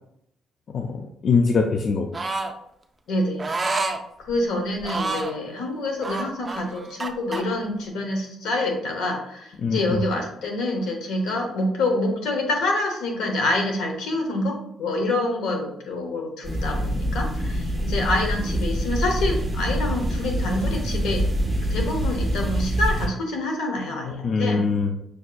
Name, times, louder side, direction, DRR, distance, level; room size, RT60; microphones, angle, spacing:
voice 1, 0.7-2.1 9.6-10.0 24.2-25.0, left 4 dB, 55° left, 3 dB, 0.3 m, -23 dB
sound 1, 2.1-2.5 3.4-4.0 4.8-5.4 6.0-7.4, right 3 dB, 25° right, 0.4 m, -28 dB
voice 2, 3.1-3.4 4.2-21.3 21.7-24.7, left 2 dB, 85° left, 2 dB, 0.9 m, -26 dB
sound 2, 16.4-23.1, equal, 5° right, 1.1 m, -25 dB
6.3 x 2.4 x 2.2 m, 0.76 s
cardioid pair, 90°, 0 cm